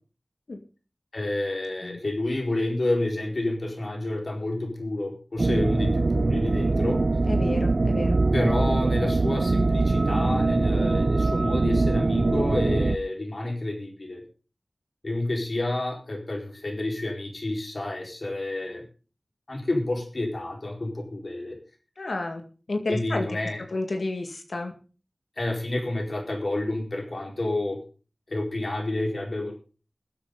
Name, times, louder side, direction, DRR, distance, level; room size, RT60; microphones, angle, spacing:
voice 1, 1.1-7.0 8.3-14.2 15.0-18.8 19.5-21.6 22.9-23.6 25.4-27.8 28.3-29.5, left 2 dB, 60° left, 2 dB, 4.5 m, -29 dB
sound 1, 5.4-13.0, right 3 dB, 60° right, 0.5 m, -23 dB
voice 2, 7.3-8.2 22.0-22.4 22.7-23.4 23.7-24.7, left 2 dB, 80° left, 4 dB, 2.0 m, -30 dB
21.0 x 8.6 x 3.9 m, 0.35 s
wide cardioid pair, 50°, 0 cm